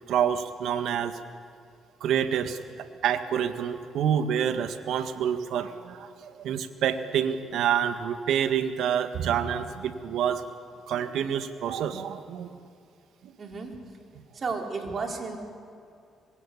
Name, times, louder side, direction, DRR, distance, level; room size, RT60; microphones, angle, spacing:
voice 1, 0.1-1.2 2.0-10.4 10.9-12.6 13.2-13.3, right 8 dB, 75° right, 9 dB, 1.6 m, -28 dB
voice 2, 13.4-13.8 14.3-15.4, right 4 dB, 45° right, 2 dB, 4.5 m, -33 dB
25.5 x 22.0 x 8.6 m, 2.4 s
supercardioid pair, 60°, 0 cm